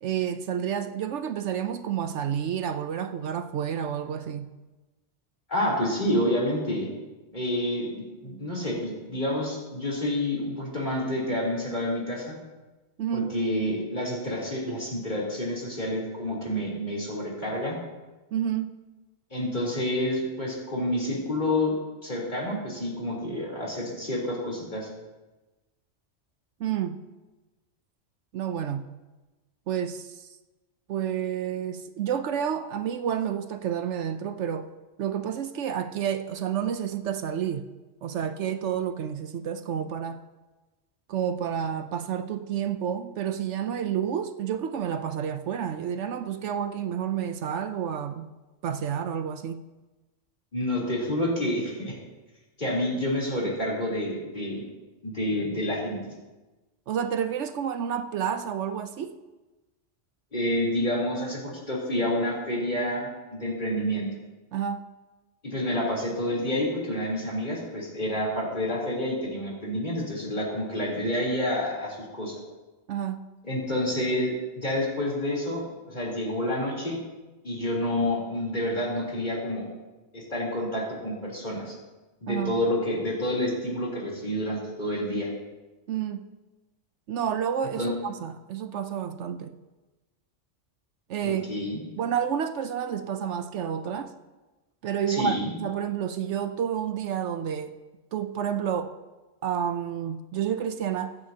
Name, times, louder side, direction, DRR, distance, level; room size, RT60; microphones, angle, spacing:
voice 1, 0.0-4.5 13.0-13.3 18.3-18.8 26.6-27.0 28.3-28.9 29.7-30.3 30.9-34.7 35.0-37.7 38.0-40.2 41.1-48.3 48.6-49.6 56.9-59.2 64.5-64.8 72.9-73.2 82.3-82.6 85.9-86.2 87.1-89.6 91.1-91.5 92.0-94.1 94.8-97.7 98.1-98.9 99.4-101.2, right 8 dB, 70° right, 0.9 m, -30 dB
voice 2, 5.5-6.9 7.3-12.4 13.1-17.8 19.3-21.7 22.0-24.9 50.5-52.0 52.6-54.6 55.0-56.1 60.3-64.1 65.4-72.4 73.4-75.6 75.9-77.0 77.4-79.6 80.1-81.7 82.2-85.3 87.8-87.9 91.2-91.8 95.1-95.5, left 1 dB, 40° left, 3.6 m, -28 dB
23.5 x 9.3 x 2.8 m
omnidirectional pair, 1.3 m